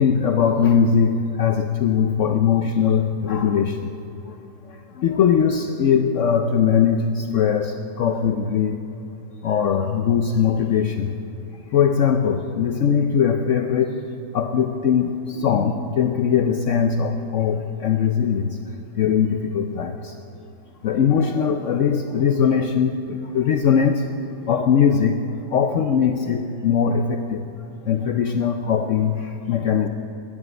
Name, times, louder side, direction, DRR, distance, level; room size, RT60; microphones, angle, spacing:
voice 1, 0.0-3.9 4.2-4.4 4.7-8.8 9.4-11.1 11.7-14.0 14.3-18.6 19.0-20.2 20.8-24.1 24.4-25.2 25.5-27.4 27.9-29.9, left 7 dB, 80° left, 6 dB, 0.6 m, -20 dB
12.5 x 10.0 x 9.7 m, 2.8 s
omnidirectional pair, 2.0 m